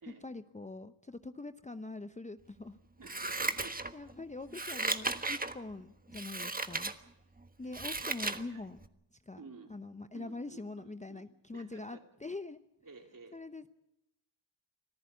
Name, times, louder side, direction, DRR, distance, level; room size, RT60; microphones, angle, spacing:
voice 1, 0.2-2.8 3.9-6.9 7.6-8.8 9.3-9.4 9.7-12.6 13.3-13.7, left 3 dB, 15° left, 10 dB, 0.8 m, -44 dB
voice 2, 2.9-3.9 8.2-8.7 9.4-9.7 10.1-11.2 11.5-12.0 12.8-13.4, right 4 dB, 45° right, 4 dB, 3.5 m, -53 dB
Scissors, 3.0-4.1 4.5-5.5 6.1-6.9 7.4-8.4 8.8-8.9, right 2 dB, 20° right, 1.4 m, -35 dB
25.0 x 14.5 x 8.4 m, 0.85 s
cardioid pair, 60°, 48 cm